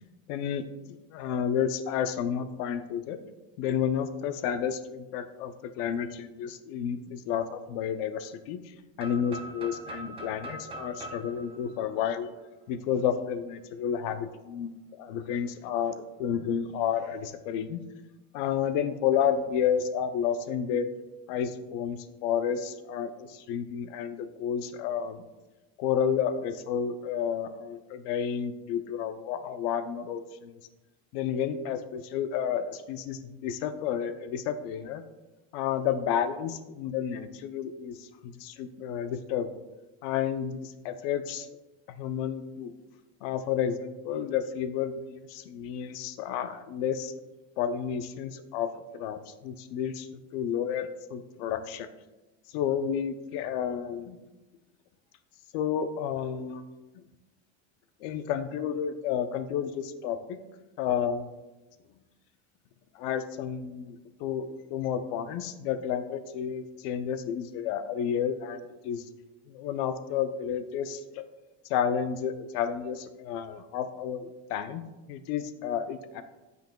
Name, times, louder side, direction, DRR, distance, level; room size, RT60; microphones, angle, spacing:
voice 1, 0.3-0.6 1.1-3.2 3.6-8.6 9.0-12.3 12.7-14.7 15.0-17.8 18.3-20.9 21.3-25.2 25.8-30.5 31.1-35.0 35.5-39.5 40.0-41.5 41.9-42.7 43.2-47.1 47.6-51.9 52.5-54.2 55.5-56.6 58.0-60.4 60.8-61.3 62.9-69.0 69.5-71.2 71.7-74.8 75.1-76.2, left 8 dB, 65° left, 10 dB, 0.6 m, -31 dB
sound 1, 9.0-12.8, right 1 dB, 20° right, 0.5 m, -43 dB
8.9 x 5.4 x 2.2 m, 1.1 s
cardioid pair, 155°, 31 cm